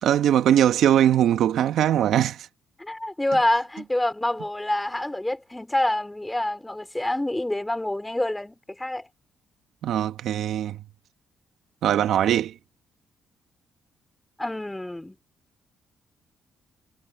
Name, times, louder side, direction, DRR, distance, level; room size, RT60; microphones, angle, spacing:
voice 1, 0.0-2.4 9.8-10.8 11.8-12.5, right 10 dB, 75° right, 1.5 m, -21 dB
voice 2, 2.8-9.1 14.4-15.2, left 1 dB, 10° left, 4.7 m, -27 dB
cardioid pair, 90°, 0 cm